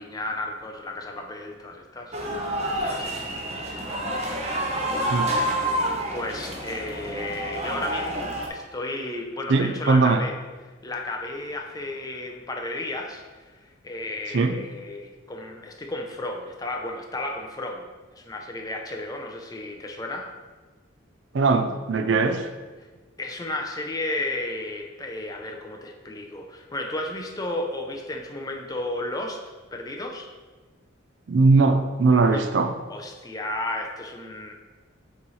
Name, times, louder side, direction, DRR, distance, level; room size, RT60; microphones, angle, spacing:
voice 1, 0.0-2.1 2.4-3.7 6.1-10.3 10.8-13.2 13.6-17.9 18.1-20.3 23.2-29.4 29.7-30.3 32.3-32.4 32.9-34.5, left 2 dB, 20° left, 2 dB, 0.5 m, -33 dB
sound 1, 2.1-8.5, right 1 dB, 30° right, 0.7 m, -28 dB
voice 2, 9.5-10.2 14.3-14.6 21.3-22.4 31.3-32.7, right 3 dB, 60° right, 7 dB, 0.4 m, -20 dB
7.2 x 3.2 x 4.1 m, 1.3 s
head